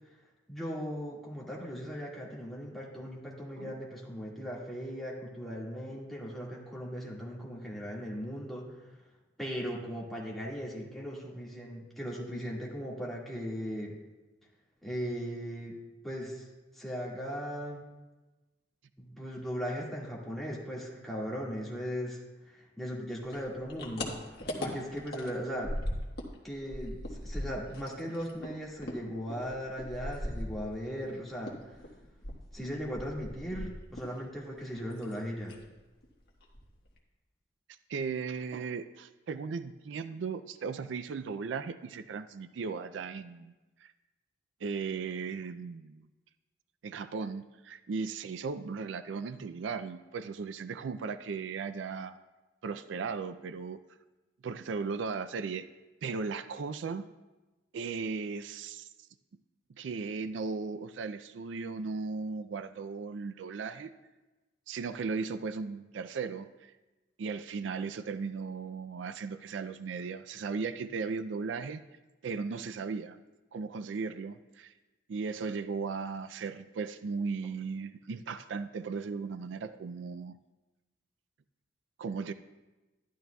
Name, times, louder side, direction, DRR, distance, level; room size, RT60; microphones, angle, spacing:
voice 1, 0.5-8.9 9.4-14.0 14.8-15.7 16.0-16.5 16.7-17.8 19.0-25.7 26.4-27.0 27.2-31.8 32.5-35.6, equal, ahead, -5 dB, 1.8 m, -38 dB
sound 1, 23.3-26.4 26.6-31.1 31.4-34.2 34.4-35.1 35.4-35.7 36.0-36.1 36.4-37.0, left 1 dB, 55° left, 1.4 m, -39 dB
voice 2, 37.9-43.5 43.8-43.9 44.6-46.1 46.8-52.2 52.6-53.8 54.4-55.7 56.0-57.0 57.7-58.9 59.8-63.9 64.7-66.7 67.2-71.8 72.2-73.2 73.5-74.7 75.1-80.4 82.0-82.3, right 5 dB, 85° right, 12 dB, 0.4 m, -36 dB
12.0 x 11.0 x 2.3 m, 1.1 s
head